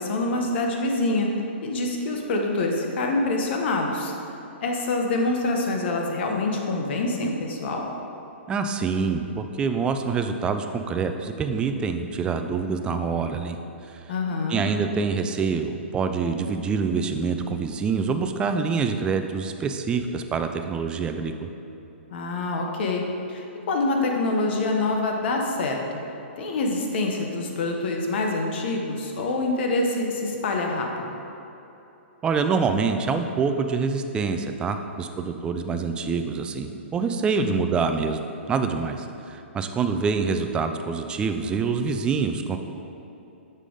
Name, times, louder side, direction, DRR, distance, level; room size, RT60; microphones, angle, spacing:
voice 1, 0.0-1.3 1.6-4.1 4.6-7.8 14.1-14.7 22.1-26.0 26.4-31.0 37.4-37.6, left 2 dB, 60° left, 1 dB, 1.0 m, -26 dB
voice 2, 8.5-13.6 13.9-14.0 14.5-21.5 32.2-38.2 38.5-42.6, right 5 dB, 15° right, 7 dB, 0.3 m, -26 dB
6.7 x 4.9 x 3.8 m, 2.9 s
hypercardioid pair, 140°, 7 cm